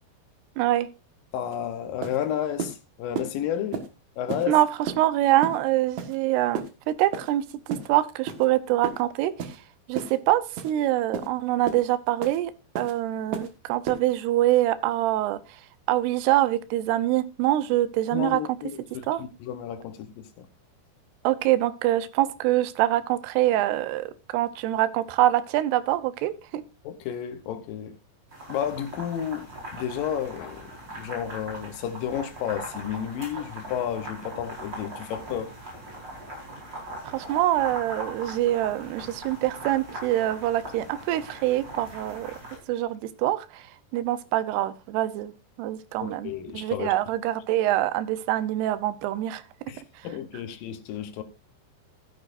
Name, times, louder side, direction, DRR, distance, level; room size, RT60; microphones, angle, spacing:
voice 1, 0.6-0.9 4.5-7.4 7.9-9.5 9.9-12.5 12.8-15.4 15.9-18.4 19.1-19.2 21.2-24.1 24.3-26.6 37.1-42.3 42.7-43.6 43.9-45.3 45.6-49.4, right 14 dB, 85° right, 2.9 m, -25 dB
voice 2, 1.3-3.8 4.2-4.6 18.1-20.5 26.8-27.9 28.5-35.5 46.0-46.9 49.7-51.2, left 9 dB, 70° left, 2.4 m, -32 dB
sound 1, 1.5-1.6 2.0-2.2 2.6-2.8 3.1-3.3 3.7-3.9 4.3-4.5 4.9-5.0 5.4-5.6 6.0-6.2 6.5-6.7 7.1-7.3 7.7-7.9 8.3-8.5 8.8-9.0 9.4-9.6 9.9-10.1 10.6-10.7 11.1-11.3 11.7-11.8 12.2-12.4 12.7-12.9 13.3-13.5 13.9-14.0, right 6 dB, 55° right, 2.5 m, -32 dB
sound 2, 28.3-42.6, right 1 dB, 25° right, 5.1 m, -40 dB
14.0 x 10.5 x 2.6 m
omnidirectional pair, 4.6 m